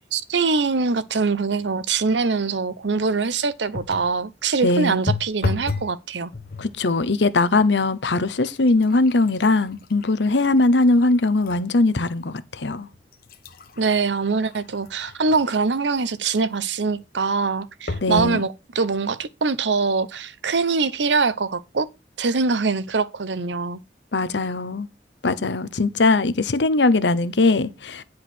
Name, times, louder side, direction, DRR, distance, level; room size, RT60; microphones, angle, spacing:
voice 1, 0.1-6.3 13.8-21.9 22.2-23.8, right 4 dB, 85° right, 0.8 m, -23 dB
sound 1, 3.7-4.2 5.1-6.0 6.3-6.8 7.6-7.7 8.1-11.7 12.2-12.3 12.9-15.7 17.9-18.4 19.1-19.2 19.4-19.5, left 3 dB, 55° left, 1.0 m, -33 dB
voice 2, 4.6-5.0 6.6-12.9 18.0-18.5 24.1-24.9 25.2-28.0, left 2 dB, 80° left, 0.9 m, -20 dB
10.0 x 4.8 x 6.0 m
head